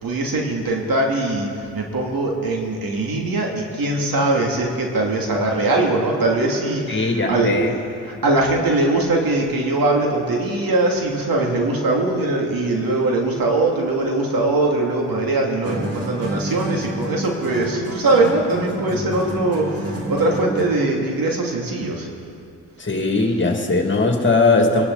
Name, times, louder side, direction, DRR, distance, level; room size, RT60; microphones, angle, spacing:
voice 1, 0.0-1.5 1.7-7.6 8.0-22.1, right 2 dB, 60° right, 0 dB, 3.0 m, -21 dB
voice 2, 6.9-7.7 22.8-24.9, left 3 dB, 30° left, 2 dB, 2.6 m, -19 dB
sound 1, 15.6-21.0, equal, 40° right, 3.2 m, -29 dB
23.5 x 11.5 x 4.2 m, 2.4 s
hypercardioid pair, 45°, 40 cm